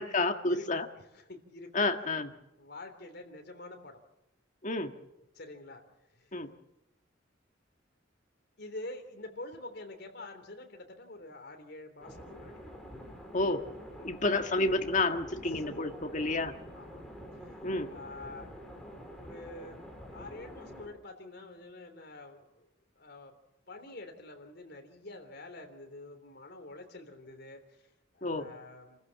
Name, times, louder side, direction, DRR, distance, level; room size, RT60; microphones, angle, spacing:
voice 1, 0.0-0.9 1.7-2.3 4.6-4.9 6.3-6.5 13.3-13.7 14.0-16.5 17.6-17.9 28.2-28.5, left 2 dB, 40° left, 6 dB, 1.6 m, -30 dB
voice 2, 1.0-1.7 2.6-4.0 5.2-5.8 6.2-6.4 8.6-12.6 14.0-14.2 15.5-15.6 16.7-17.0 17.4-17.6 17.8-18.5 19.2-19.8 20.1-22.7 22.9-23.3 23.7-27.9 28.1-29.0, left 2 dB, 60° left, 5 dB, 3.4 m, -47 dB
sound 1, 12.0-20.9, equal, ahead, 4.2 m, -47 dB
28.0 x 14.5 x 7.3 m, 0.89 s
head